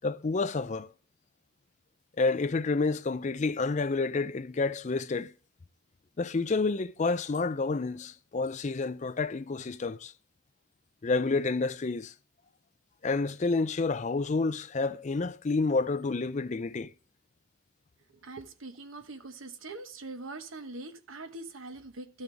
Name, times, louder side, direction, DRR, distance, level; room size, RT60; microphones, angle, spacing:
voice 1, 0.0-0.9 2.2-5.3 6.2-10.1 11.0-12.1 13.0-16.9, left 3 dB, 35° left, 0.5 m, -29 dB
voice 2, 18.2-22.2, right 2 dB, 85° right, 1.2 m, -43 dB
13.0 x 6.5 x 3.4 m
head